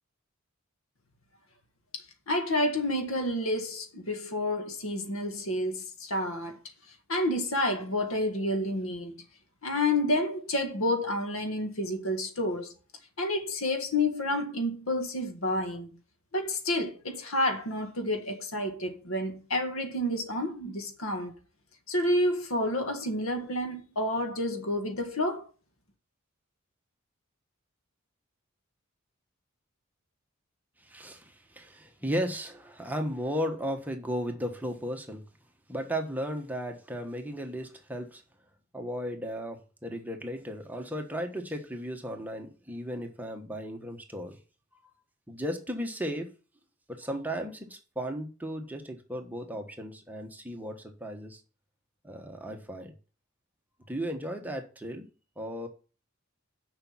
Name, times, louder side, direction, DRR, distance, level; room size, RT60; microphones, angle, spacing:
voice 1, 1.9-6.6 7.1-9.2 9.6-12.7 13.2-16.0 16.3-21.3 21.9-25.5, left 1 dB, 75° left, 1.6 m, -29 dB
voice 2, 30.8-35.2 35.7-38.2 38.7-44.4 45.3-46.3 46.9-51.4 52.0-52.9 53.9-55.1 55.4-55.7, equal, 10° right, 1.2 m, -35 dB
6.8 x 5.8 x 7.1 m
head